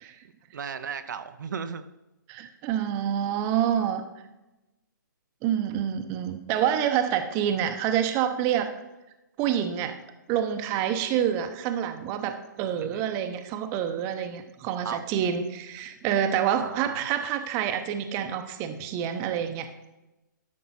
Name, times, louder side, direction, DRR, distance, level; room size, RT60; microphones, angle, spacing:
voice 1, 0.5-1.9 12.8-13.1 14.8-15.0 16.6-17.0, right 6 dB, 65° right, 9 dB, 0.6 m, -35 dB
voice 2, 2.3-4.0 5.4-8.7 9.4-9.9 10.3-19.7, right 9 dB, 25° right, 8 dB, 0.8 m, -27 dB
12.0 x 5.3 x 4.2 m, 0.99 s
hypercardioid pair, 140°, 11 cm